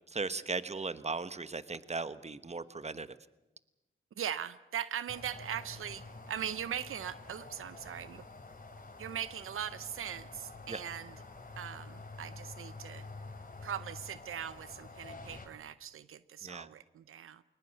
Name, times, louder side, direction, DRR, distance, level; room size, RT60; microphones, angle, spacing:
voice 1, 0.1-3.2 10.7-10.8 16.4-16.7, right 4 dB, 30° right, 14 dB, 1.2 m, -37 dB
voice 2, 4.2-8.2 9.0-11.2 11.6-13.1 13.6-17.4, right 9 dB, 85° right, 15 dB, 0.7 m, -40 dB
sound 1, 5.1-15.5, left 3 dB, 40° left, 4.0 m, -48 dB
21.0 x 19.5 x 8.3 m, 0.99 s
cardioid pair, 55°, 21 cm